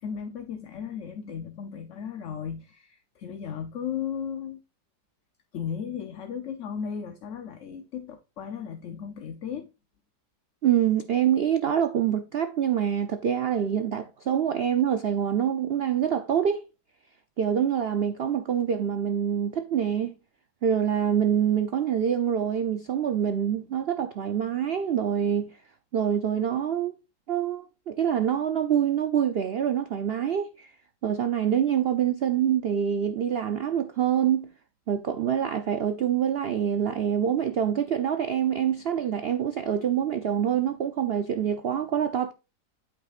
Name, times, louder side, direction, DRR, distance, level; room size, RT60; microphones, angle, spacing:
voice 1, 0.0-4.6 5.5-9.7, left 7 dB, 55° left, 0.9 m, -35 dB
voice 2, 10.6-16.6 17.4-20.1 20.6-25.5 25.9-26.9 27.3-30.7 31.0-34.5 34.9-42.3, right 9 dB, 75° right, 0.5 m, -25 dB
8.7 x 8.2 x 2.4 m
omnidirectional pair, 1.8 m